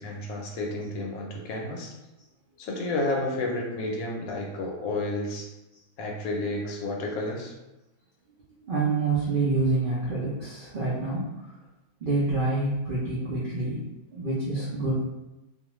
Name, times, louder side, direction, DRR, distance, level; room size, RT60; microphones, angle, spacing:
voice 1, 0.0-1.9 2.6-5.5 6.0-7.5, left 2 dB, 70° left, 0 dB, 1.0 m, -31 dB
voice 2, 8.7-11.3 12.0-13.8 14.1-15.0, right 3 dB, 70° right, -7 dB, 0.5 m, -27 dB
2.4 x 2.4 x 2.9 m, 0.98 s
omnidirectional pair, 1.6 m